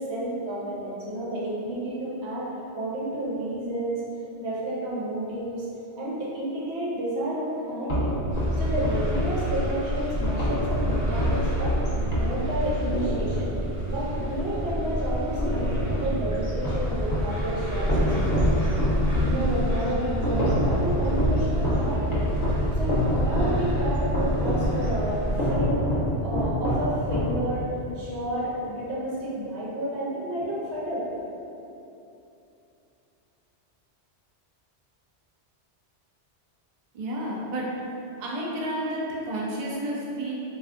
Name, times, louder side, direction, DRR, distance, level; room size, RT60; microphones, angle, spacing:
voice 1, 0.0-2.5 2.7-4.0 4.4-5.7 6.0-8.0 8.5-13.5 13.9-18.1 19.2-22.2 22.7-31.3, right 1 dB, 85° right, -6 dB, 1.0 m, -31 dB
sound 1, 7.9-15.0 15.4-17.4 17.9-27.8, equal, 45° left, 0.6 m, -27 dB
sound 2, 8.3-25.4, equal, 20° right, 0.7 m, -29 dB
voice 2, 36.9-37.8 38.2-40.3, right 1 dB, 55° right, -4 dB, 0.5 m, -31 dB
3.3 x 2.4 x 2.4 m, 2.8 s
omnidirectional pair, 1.1 m